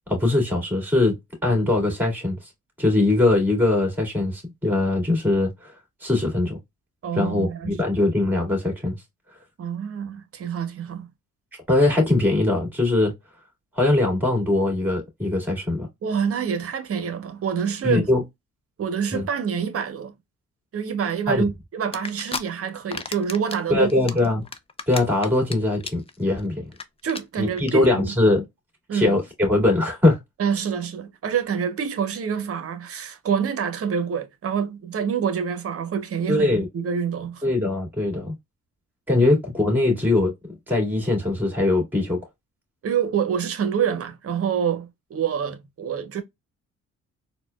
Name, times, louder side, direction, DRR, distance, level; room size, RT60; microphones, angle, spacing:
voice 1, 0.1-1.2 1.4-2.5 2.8-5.7 6.0-6.6 7.1-9.0 11.7-13.1 13.8-15.9 17.8-18.2 19.1-19.3 21.3-21.5 23.7-24.5 24.9-26.7 27.4-28.4 28.9-30.2 36.3-36.7 37.4-38.3 39.1-40.3 40.7-42.2, left 2 dB, 5° right, 2.1 m, -21 dB
voice 2, 7.0-7.9 9.6-11.1 16.0-18.1 18.8-20.2 20.7-24.0 27.0-28.1 28.9-29.2 30.4-37.4 42.8-46.2, right 7 dB, 50° right, 0.8 m, -27 dB
sound 1, 21.9-22.4 22.8-23.6 23.9-25.5 25.8-26.1 26.4-26.5 26.7-26.8 27.1-27.2 27.6-27.7, left 4 dB, 20° left, 0.5 m, -32 dB
4.2 x 2.2 x 2.2 m
cardioid pair, 90°, 30 cm